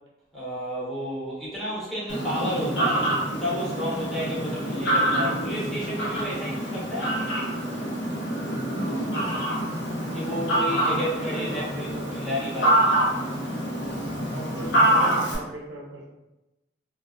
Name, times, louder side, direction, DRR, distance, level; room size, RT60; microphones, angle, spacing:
voice 1, 0.3-7.2 10.1-12.9, equal, ahead, -10 dB, 0.8 m, -31 dB
Fowl, 2.1-15.3, right 1 dB, 75° left, 0.7 m, -26 dB
voice 2, 8.8-9.3 11.0-12.3 14.3-16.1, right 1 dB, 70° right, -3 dB, 0.6 m, -39 dB
2.5 x 2.3 x 2.2 m, 0.98 s
head